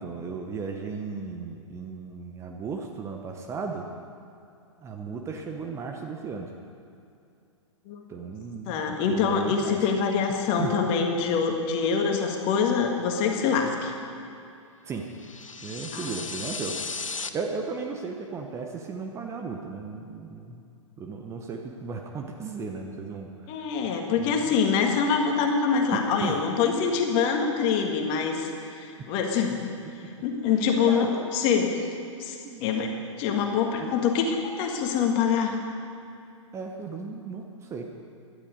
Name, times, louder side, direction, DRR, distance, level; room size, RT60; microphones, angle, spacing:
voice 1, 0.0-3.8 4.8-6.5 8.1-9.8 10.6-10.7 14.9-15.0 15.6-16.8 17.3-20.6 21.0-23.3 24.2-24.4 25.9-26.4 30.9-31.3 32.4-32.9 33.8-33.9 36.5-37.9, right 4 dB, 15° right, 3 dB, 0.9 m, -35 dB
voice 2, 8.7-13.9 15.9-16.3 23.5-29.6 30.2-31.7 32.2-35.6, left 6 dB, 30° left, 3 dB, 1.8 m, -25 dB
sound 1, 15.2-17.3, left 4 dB, 80° left, 0.8 m, -35 dB
17.0 x 12.0 x 5.3 m, 2.6 s
figure-of-eight pair, 110°, 17 cm